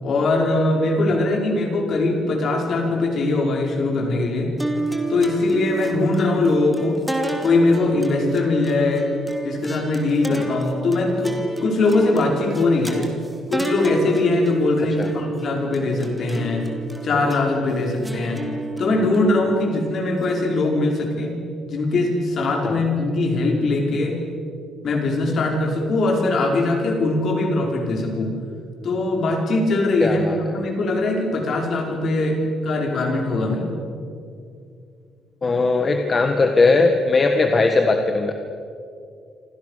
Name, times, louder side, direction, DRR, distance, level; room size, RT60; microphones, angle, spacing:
voice 1, 0.0-4.5 5.1-7.0 7.4-9.1 9.4-13.0 13.5-16.6 17.0-18.4 18.8-21.4 21.7-24.2 24.8-28.3 28.8-30.3 30.5-32.4 32.6-33.8, left 2 dB, 45° left, 1 dB, 5.5 m, -21 dB
sound 1, 4.6-21.1, right 2 dB, 5° right, 2.7 m, -31 dB
voice 2, 30.0-30.6 35.4-38.3, left 3 dB, 25° left, 5 dB, 1.5 m, -19 dB
28.5 x 26.0 x 6.7 m, 2.4 s
cardioid pair, 165°, 0 cm